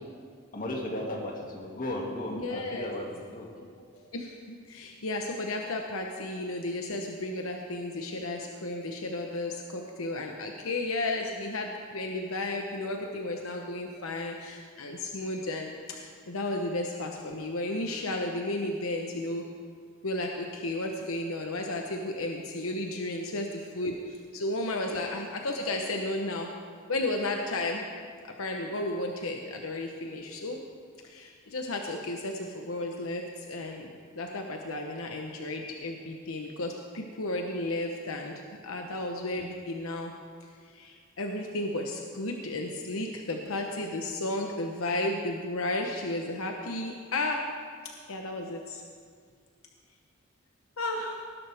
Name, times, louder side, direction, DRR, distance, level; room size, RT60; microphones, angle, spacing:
voice 1, 0.5-3.9 24.8-25.0 48.3-48.5, left 1 dB, 40° left, -1 dB, 2.3 m, -36 dB
voice 2, 2.3-2.9 4.1-19.5 20.0-26.5 26.9-27.9 28.4-30.6 31.0-38.3 38.6-40.1 40.6-47.5 48.1-48.8 50.8-51.2, left 2 dB, 80° left, 2 dB, 1.0 m, -33 dB
19.5 x 11.0 x 3.5 m, 2.1 s
head